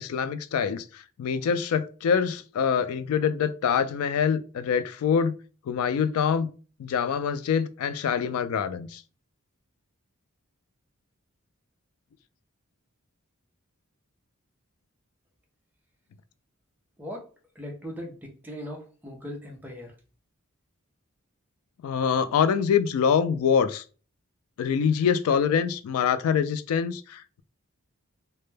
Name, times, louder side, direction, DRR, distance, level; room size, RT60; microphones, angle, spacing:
voice 1, 0.0-5.3 5.7-6.5 6.8-9.0 21.8-23.8 24.6-27.4, left 7 dB, 85° left, 0.3 m, -25 dB
voice 2, 17.6-18.2 18.4-19.9, equal, 10° right, 0.4 m, -38 dB
2.1 x 2.1 x 3.1 m
head